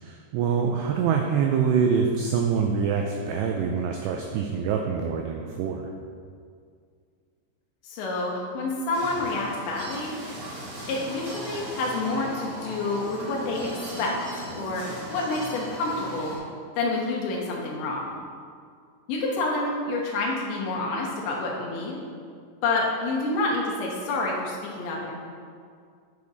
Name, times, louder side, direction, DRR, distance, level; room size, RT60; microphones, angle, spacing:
voice 1, 0.0-5.9, right 6 dB, 90° right, 2 dB, 2.4 m, -25 dB
voice 2, 7.8-10.1 10.9-13.7 14.0-14.8 15.1-16.4 16.8-18.1 19.1-22.0 22.6-25.1, left 2 dB, 75° left, -2 dB, 3.1 m, -28 dB
sound 1, 8.9-16.4, right 1 dB, 70° right, 4.6 m, -37 dB
8.3 x 6.7 x 4.0 m, 2.1 s
omnidirectional pair, 5.5 m